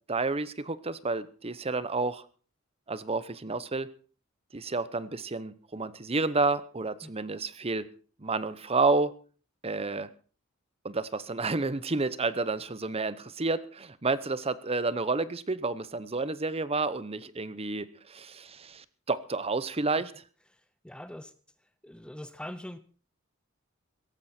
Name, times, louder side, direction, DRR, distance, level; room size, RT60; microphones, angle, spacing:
voice 1, 0.1-2.2 2.9-3.9 4.5-7.9 8.2-9.1 9.6-10.1 10.8-20.1, right 3 dB, 30° right, 16 dB, 0.9 m, -30 dB
voice 2, 20.8-21.3 21.8-22.8, left 1 dB, 5° left, 13 dB, 0.6 m, -42 dB
17.0 x 14.5 x 4.4 m, 0.39 s
head